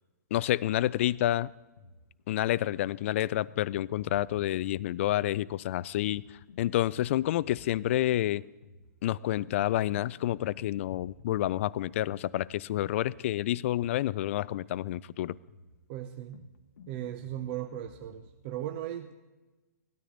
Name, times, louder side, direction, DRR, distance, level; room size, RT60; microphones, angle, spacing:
voice 1, 0.3-1.5 2.3-6.2 6.6-8.4 9.0-15.4, left 13 dB, 45° left, 21 dB, 0.4 m, -29 dB
sound 1, 1.6-18.4, left 4 dB, 70° left, 1.0 m, -56 dB
voice 2, 15.9-16.5 16.9-19.1, right 12 dB, 35° right, 7 dB, 0.8 m, -37 dB
18.0 x 13.0 x 3.9 m, 1.1 s
hypercardioid pair, 140°, 10 cm